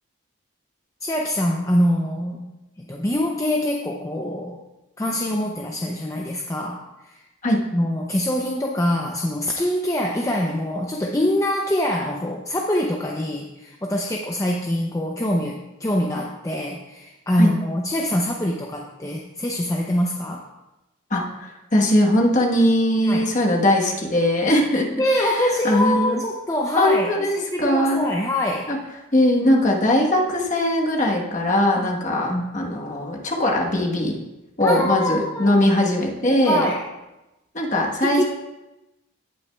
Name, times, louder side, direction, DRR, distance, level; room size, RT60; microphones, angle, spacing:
voice 1, 1.0-2.5 2.8-4.6 5.0-7.2 7.7-20.5 23.0-23.2 25.0-28.7 31.8-31.9 32.3-32.4 34.6-35.6 36.5-36.8 38.1-38.2, left 1 dB, 15° left, 0 dB, 0.5 m, -24 dB
voice 2, 21.1-24.9 25.2-26.2 26.8-28.1 28.7-28.8 29.1-34.1 34.6-36.7 37.5-38.2, left 1 dB, 35° left, -1 dB, 1.1 m, -20 dB
17.0 x 6.0 x 2.3 m, 0.99 s
head